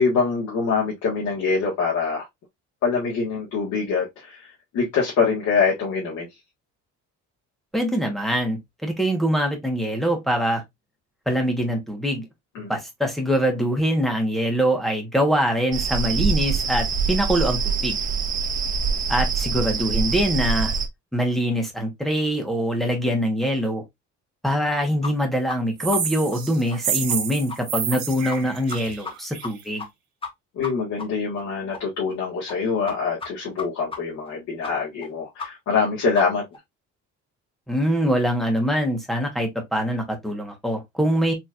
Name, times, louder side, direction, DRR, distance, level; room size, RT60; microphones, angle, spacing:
voice 1, 0.0-2.2 2.8-4.5 4.7-6.3 12.5-12.7 30.6-36.4, left 5 dB, 70° left, 1.6 m, -24 dB
voice 2, 7.7-10.6 11.3-12.2 12.6-18.0 19.1-20.7 21.1-23.8 24.4-29.9 37.7-41.3, equal, ahead, 1.1 m, -23 dB
sound 1, 15.7-20.9, right 5 dB, 25° right, 0.5 m, -24 dB
sound 2, 25.0-25.1 25.5-25.6 25.9-26.0 26.3-26.4 26.7-26.8 27.1-27.2 27.5-27.6 27.9-28.0 28.3-28.4 28.7-29.1 29.4-29.5 29.8-29.9 30.2-30.3 30.6-30.7 31.0-31.1 31.4-31.5 31.7-31.8 32.1-32.2 32.5-32.6 32.9-33.0 33.2-33.3 33.6-33.7 33.9-34.0 34.3-34.4 34.6-34.7 35.0-35.1 35.4-35.5 35.8-35.9 36.1-36.2 36.5-36.6, left 4 dB, 20° left, 1.0 m, -33 dB
sound 3, 25.8-29.6, right 7 dB, 65° right, 1.3 m, -29 dB
4.3 x 3.0 x 2.4 m
cardioid pair, 150°, 30 cm